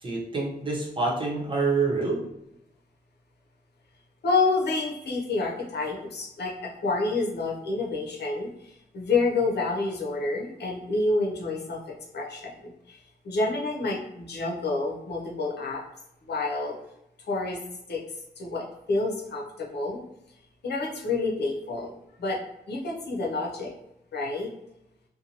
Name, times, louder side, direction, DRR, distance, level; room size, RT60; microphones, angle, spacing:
voice 1, 0.0-2.2, right 3 dB, 30° right, -4 dB, 0.9 m, -27 dB
voice 2, 4.2-11.8 12.1-15.8 16.2-16.7 17.3-17.6 17.9-20.0 20.6-21.9 22.2-22.4 22.7-23.7 24.1-24.5, left 3 dB, 80° left, -2 dB, 0.7 m, -28 dB
2.6 x 2.2 x 2.9 m, 0.83 s
cardioid pair, 80°, 17 cm